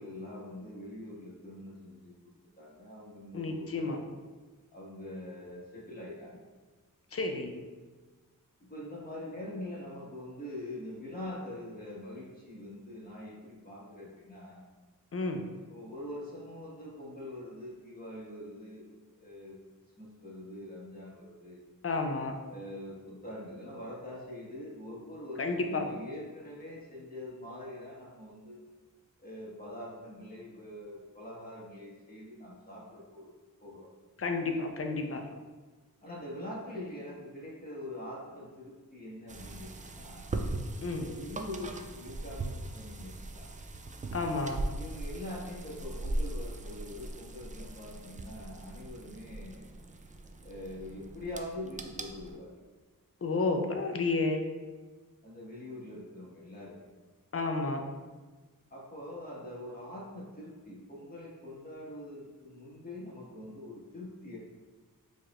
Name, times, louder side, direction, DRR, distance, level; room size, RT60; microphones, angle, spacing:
voice 1, 0.0-2.1 2.6-4.2 4.7-6.4 8.6-14.6 15.7-18.8 19.1-19.6 20.0-21.6 22.5-28.6 29.2-33.3 33.6-33.9 36.0-40.3 41.0-43.5 44.8-49.8 50.4-52.5 55.2-56.9 58.7-64.4, left 1 dB, 25° left, -6 dB, 1.5 m, -44 dB
voice 2, 3.3-4.0 7.1-7.6 15.1-15.4 21.8-22.4 25.4-25.9 34.2-35.3 40.8-41.1 44.1-44.6 53.2-54.4 57.3-57.9, left 3 dB, 40° left, 4 dB, 0.5 m, -31 dB
sound 1, 39.3-52.4, right 2 dB, 25° right, 0.3 m, -40 dB
4.5 x 3.1 x 2.4 m, 1.3 s
cardioid pair, 60°, 34 cm